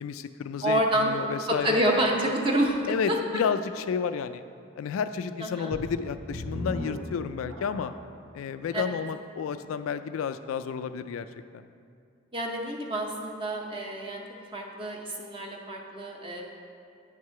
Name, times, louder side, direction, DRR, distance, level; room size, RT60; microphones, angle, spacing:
voice 1, 0.0-1.8 2.9-4.4 4.8-7.9 8.3-11.3 11.5-11.6, left 6 dB, 85° left, 12 dB, 0.3 m, -31 dB
voice 2, 0.6-1.1 1.6-2.8 3.1-3.4 5.4-5.7 8.7-8.9 12.3-16.4, right 1 dB, 25° right, -1 dB, 0.7 m, -28 dB
sound 1, 5.7-8.1 8.8-8.9 9.5-9.6, equal, 85° right, 0.9 m, -37 dB
9.4 x 4.7 x 5.6 m, 2.3 s
head